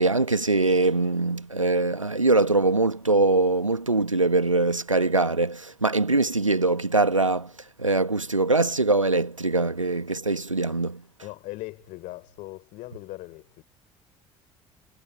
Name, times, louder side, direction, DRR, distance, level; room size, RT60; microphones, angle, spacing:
voice 1, 0.0-7.5 7.8-11.0, right 3 dB, 90° right, 1.3 m, -22 dB
voice 2, 11.2-13.6, left 19 dB, 55° left, 3.9 m, -39 dB
figure-of-eight pair, 55°, 16 cm